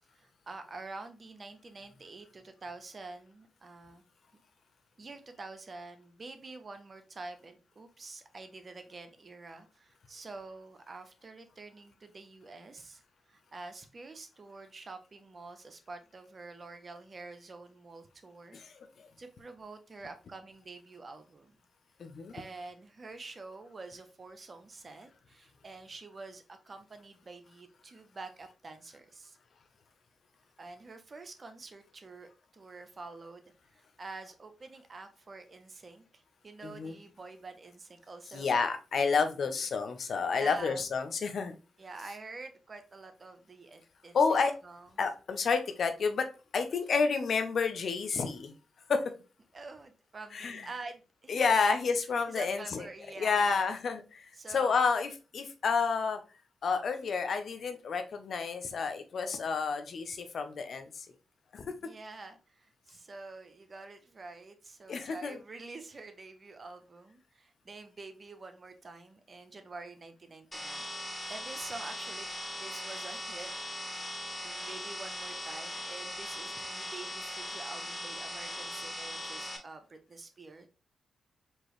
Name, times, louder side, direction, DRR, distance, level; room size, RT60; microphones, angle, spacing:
voice 1, 0.1-4.0 4.3-4.4 5.0-13.0 13.3-18.6 19.2-21.6 22.3-29.4 30.6-38.5 39.2-39.4 40.3-40.8 41.8-44.2 44.6-45.0 49.5-51.6 52.3-53.7 54.3-54.8 61.8-72.3 72.6-73.5 74.4-80.7, right 3 dB, 45° right, 8 dB, 0.9 m, -47 dB
voice 2, 18.5-19.1 22.0-22.3 36.6-36.9 38.3-41.6 44.1-44.5 45.0-46.3 46.5-48.5 48.9-49.0 50.3-50.6 51.3-52.8 53.2-54.2 54.5-56.2 56.6-61.1 61.5-61.7 64.9-65.4, left 5 dB, 65° left, 7 dB, 0.7 m, -30 dB
sound 1, 70.5-79.6, left 1 dB, 15° left, 1.9 m, -40 dB
4.5 x 2.9 x 3.1 m, 0.32 s
supercardioid pair, 45°, 0 cm